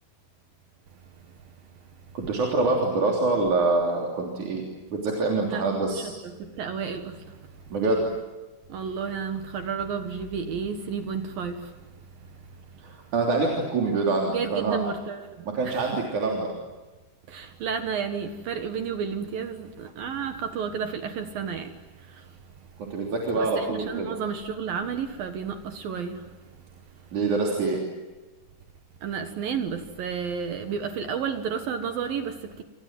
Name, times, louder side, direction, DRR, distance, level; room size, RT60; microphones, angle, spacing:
voice 1, 2.1-4.6 4.9-6.1 7.7-8.0 12.8-14.8 15.5-16.5 22.9-24.1 27.1-27.8, right 3 dB, 45° right, 4.4 m, -25 dB
voice 2, 5.5-7.6 8.7-11.9 12.2-12.7 14.3-16.0 17.3-22.4 23.4-26.4 26.9-27.0 29.0-32.6, right 6 dB, 60° right, 2.7 m, -32 dB
28.0 x 26.5 x 7.6 m
omnidirectional pair, 5.5 m